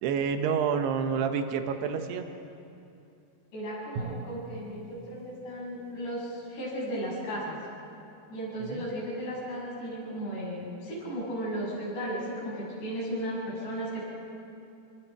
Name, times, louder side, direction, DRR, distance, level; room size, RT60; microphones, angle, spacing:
voice 1, 0.0-2.3 8.6-8.9, right 6 dB, 85° right, 6 dB, 3.2 m, -28 dB
voice 2, 3.5-7.6 8.3-14.0, right 1 dB, 85° left, -5 dB, 9.4 m, -35 dB
Drum, 4.0-6.3, right 3 dB, 65° right, 2.2 m, -42 dB
27.5 x 22.5 x 4.8 m, 2.7 s
omnidirectional pair, 4.6 m